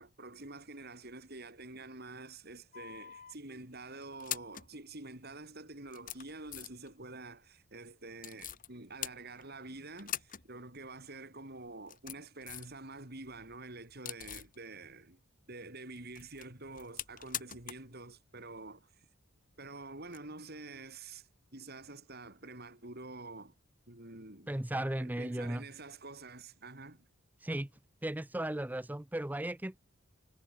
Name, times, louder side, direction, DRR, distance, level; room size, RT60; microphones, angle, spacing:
voice 1, 0.0-15.2 15.5-19.1 19.6-23.5 23.9-24.5 25.0-27.0, right 2 dB, 45° right, 4.0 m, -48 dB
sound 1, 2.7-3.3 4.0-4.7 5.4-5.5 5.9-6.9 8.2-8.7 9.0-9.7 10.0-10.5 10.8-10.9 11.7-12.8 13.1-14.6 16.0-17.9 18.2-18.3 20.1-20.2, left 11 dB, 40° left, 2.1 m, -43 dB
voice 2, 24.5-25.7 27.4-27.7 28.0-29.8, right 1 dB, 10° right, 0.5 m, -36 dB
head